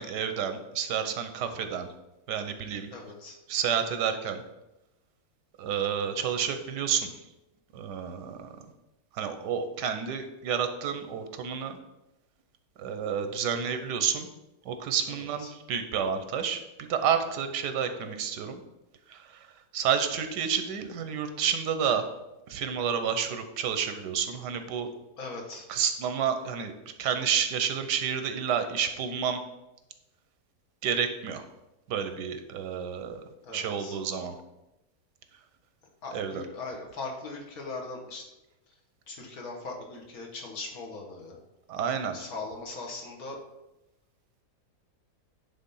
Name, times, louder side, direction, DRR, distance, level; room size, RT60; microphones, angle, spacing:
voice 1, 0.0-1.9 2.3-2.9 3.5-4.4 5.6-7.2 7.7-8.5 9.1-11.7 12.8-14.3 14.6-18.6 19.1-19.5 19.7-22.1 22.5-24.9 25.7-26.7 27.0-29.4 30.8-31.5 31.9-33.2 33.5-34.4 36.1-36.4 41.7-42.2, right 7 dB, 85° right, 8 dB, 1.4 m, -30 dB
voice 2, 2.9-3.4 15.1-15.5 25.2-25.7 33.4-34.0 36.0-38.3 38.7-38.8 39.1-41.4 42.1-43.4, left 3 dB, 60° left, 1 dB, 1.8 m, -40 dB
9.7 x 3.6 x 5.5 m, 0.95 s
omnidirectional pair, 1.8 m